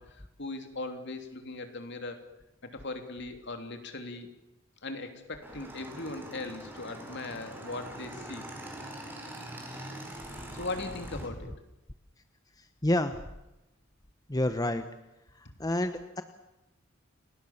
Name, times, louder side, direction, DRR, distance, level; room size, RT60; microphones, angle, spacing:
voice 1, 0.0-2.2 2.6-4.3 4.8-8.5 10.5-11.6, left 2 dB, 55° left, 6 dB, 3.1 m, -39 dB
Motorcycle / Engine, 5.4-11.3, right 1 dB, 10° right, 4.6 m, -43 dB
voice 2, 12.8-13.1 14.3-14.8 15.6-16.2, left 1 dB, 20° left, 9 dB, 1.0 m, -28 dB
30.0 x 18.5 x 7.2 m, 0.95 s
head